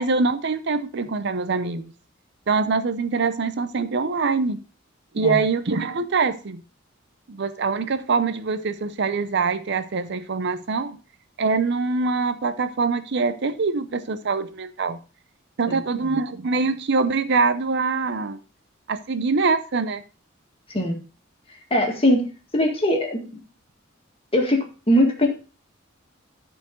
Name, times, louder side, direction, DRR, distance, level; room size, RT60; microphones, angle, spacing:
voice 1, 0.0-1.9 2.5-4.6 5.1-6.6 7.3-11.0 11.4-15.0 15.6-18.4 18.9-20.0, right 4 dB, 60° right, 0.6 m, -24 dB
voice 2, 15.7-16.2 20.7-21.0 21.7-22.2 22.5-23.2 24.3-25.3, left 1 dB, 30° left, 1.9 m, -21 dB
13.5 x 4.5 x 3.8 m
head